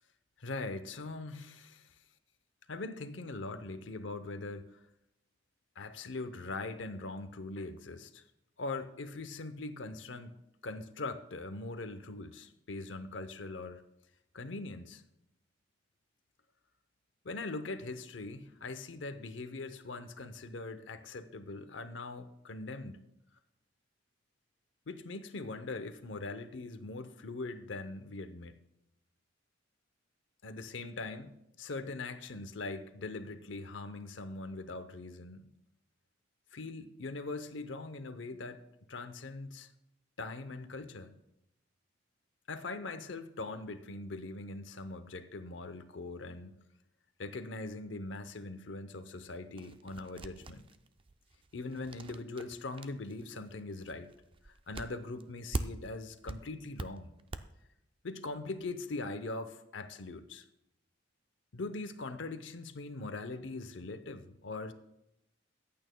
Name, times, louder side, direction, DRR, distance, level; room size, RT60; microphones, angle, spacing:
voice 1, 0.4-1.9 2.7-4.8 5.8-8.2 8.6-10.3 10.6-13.8 14.3-15.0 17.2-23.0 24.9-28.5 30.4-35.5 36.5-38.6 38.9-39.7 40.2-41.2 42.5-46.6 47.2-50.7 51.5-54.1 54.4-57.1 58.0-60.4 61.5-64.7, left 3 dB, 80° left, 0.7 m, -41 dB
sound 1, 49.6-56.0 56.3-57.4, right 2 dB, 30° right, 0.4 m, -42 dB
23.0 x 8.6 x 2.2 m
head